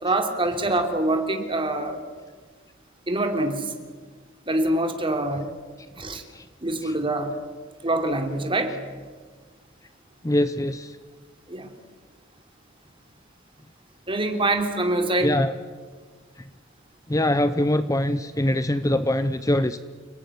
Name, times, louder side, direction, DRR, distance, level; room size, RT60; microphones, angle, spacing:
voice 1, 0.0-2.0 3.1-3.7 4.5-5.5 6.0-6.2 6.6-7.3 7.8-8.8 11.5-11.7 14.1-15.3, right 2 dB, 25° right, 5 dB, 3.3 m, -25 dB
voice 2, 10.2-10.9 15.2-15.5 17.1-19.8, left 1 dB, 15° left, 12 dB, 0.8 m, -23 dB
30.0 x 19.0 x 9.9 m, 1.5 s
head